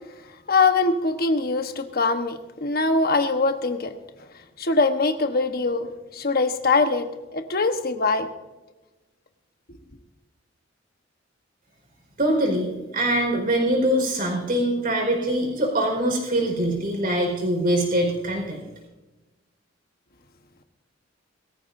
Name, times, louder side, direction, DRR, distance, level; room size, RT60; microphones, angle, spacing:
voice 1, 0.5-3.9 4.6-7.1 7.3-8.3, left 3 dB, 50° left, 7 dB, 1.2 m, -22 dB
voice 2, 12.2-18.7, right 1 dB, 45° right, 1 dB, 4.6 m, -23 dB
21.5 x 14.5 x 2.7 m, 1.1 s
head